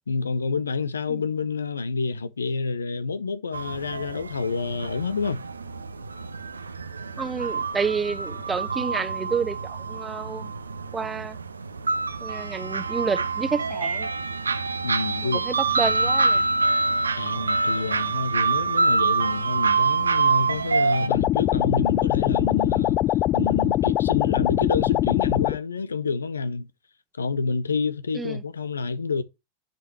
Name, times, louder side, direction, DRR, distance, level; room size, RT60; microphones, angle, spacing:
voice 1, 0.1-5.4 14.8-16.1 17.1-23.0 23.3-26.7 27.2-29.2, left 4 dB, 80° left, 0.6 m, -28 dB
sound 1, 3.5-21.1, right 4 dB, 80° right, 0.6 m, -26 dB
voice 2, 7.2-10.5 10.9-11.4 12.2-14.1 15.4-16.4 17.8-17.9 28.1-28.4, right 5 dB, 15° right, 1.0 m, -29 dB
sound 2, 21.1-25.6, left 14 dB, 40° left, 0.4 m, -22 dB
10.0 x 5.3 x 2.9 m
figure-of-eight pair, 90°, 0 cm